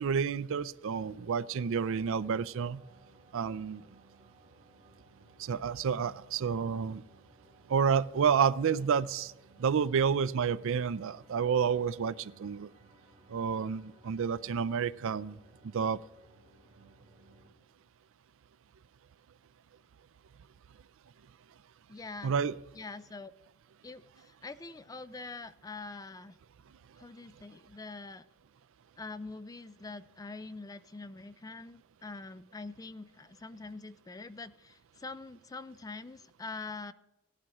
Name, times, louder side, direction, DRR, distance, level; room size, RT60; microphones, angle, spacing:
voice 1, 0.0-2.8 3.3-3.8 5.4-7.0 7.7-9.3 9.6-12.7 13.3-15.4 15.6-16.0 22.2-22.6, right 6 dB, 65° right, 18 dB, 0.4 m, -29 dB
sound 1, 1.1-17.5, right 2 dB, 25° right, 2.4 m, -61 dB
voice 2, 21.9-22.3 22.8-23.3 23.8-26.4 27.0-28.2 29.0-36.9, left 3 dB, 15° left, 14 dB, 0.4 m, -44 dB
17.5 x 11.5 x 3.0 m, 1.0 s
head